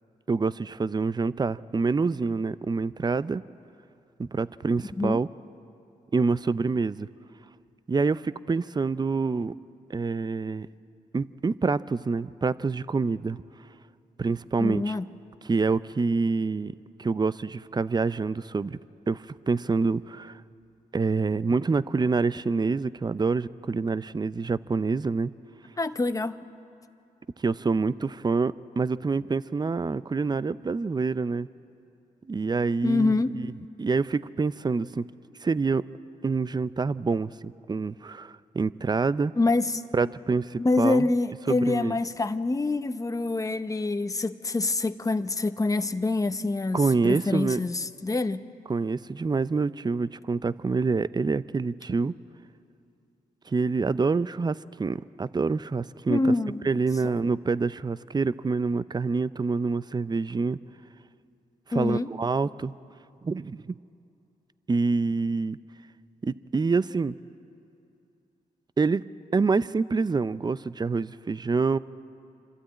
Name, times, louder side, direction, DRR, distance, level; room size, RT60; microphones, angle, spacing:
voice 1, 0.3-3.4 4.2-5.3 6.1-7.1 7.9-9.5 9.9-10.7 11.1-13.4 14.2-15.0 15.4-16.7 17.0-18.8 19.1-20.4 20.9-25.3 27.4-31.5 32.3-33.5 33.8-35.0 35.4-35.8 36.2-39.3 39.9-41.1 41.5-42.0 46.7-47.6 48.7-52.1 53.5-56.3 56.6-60.6 61.7-62.7 63.2-63.8 64.7-65.6 66.2-67.2 68.8-69.0 69.3-71.8, right 4 dB, 25° right, 16 dB, 0.5 m, -26 dB
voice 2, 14.6-15.0 25.8-26.4 32.8-33.5 39.4-39.8 40.6-48.4 56.1-56.7 57.0-57.1 61.7-62.1, left 2 dB, 20° left, 10 dB, 0.8 m, -26 dB
26.0 x 12.5 x 8.8 m, 2.6 s
cardioid pair, 60°, 16 cm